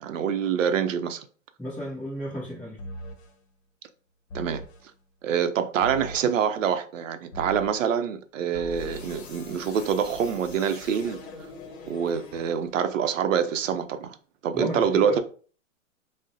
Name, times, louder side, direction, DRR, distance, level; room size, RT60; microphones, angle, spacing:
voice 1, 0.0-1.3 4.3-4.6 5.2-11.2 11.9-14.2 14.4-15.2, right 7 dB, 80° right, 0.6 m, -26 dB
voice 2, 1.6-2.8 14.5-15.2, equal, ahead, 0.4 m, -33 dB
sound 1, 2.8-3.3 4.3-4.8 5.8-6.4 7.3-7.9 8.5-12.9, left 1 dB, 55° left, 0.8 m, -41 dB
2.4 x 2.1 x 3.8 m
hypercardioid pair, 130°, 38 cm